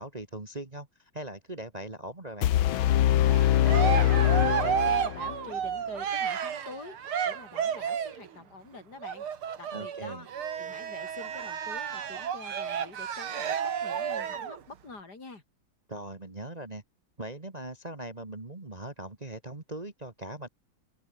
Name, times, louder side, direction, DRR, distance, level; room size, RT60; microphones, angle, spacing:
voice 1, 0.0-2.5 3.2-3.3 9.7-10.3 15.9-16.8 17.2-20.5, right 1 dB, 20° right, 1.9 m, -40 dB
sound 1, 2.4-5.4, left 12 dB, 75° left, 1.7 m, -23 dB
Cheering, 3.3-8.3 9.0-14.6, right 8 dB, 80° right, 2.7 m, -32 dB
voice 2, 3.6-9.3 9.6-10.3 10.6-13.5 13.8-15.4, left 3 dB, 50° left, 4.2 m, -46 dB
open air
omnidirectional pair, 2.3 m